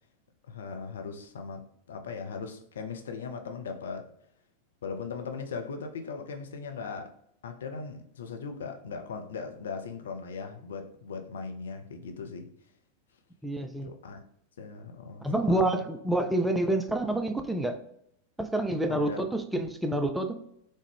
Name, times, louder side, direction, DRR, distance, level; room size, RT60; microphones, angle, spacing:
voice 1, 0.5-4.1 4.8-7.1 7.4-12.5 13.6-14.2 14.6-15.7 18.9-19.3, left 5 dB, 65° left, 0.4 m, -39 dB
voice 2, 13.4-13.9 15.2-17.8 18.4-20.4, right 1 dB, 5° right, 0.3 m, -28 dB
3.5 x 2.1 x 3.3 m
figure-of-eight pair, 90°, 0 cm